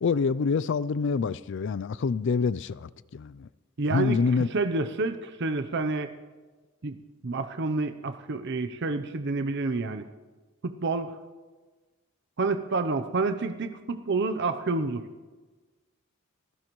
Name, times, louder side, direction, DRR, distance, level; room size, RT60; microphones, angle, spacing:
voice 1, 0.0-3.5 3.9-4.5, left 5 dB, 55° left, 0.4 m, -26 dB
voice 2, 3.8-4.2 4.5-6.1 6.8-7.0 7.2-10.1 10.6-11.1 12.4-15.0, right 3 dB, 55° right, 0.7 m, -28 dB
27.0 x 15.0 x 3.1 m
head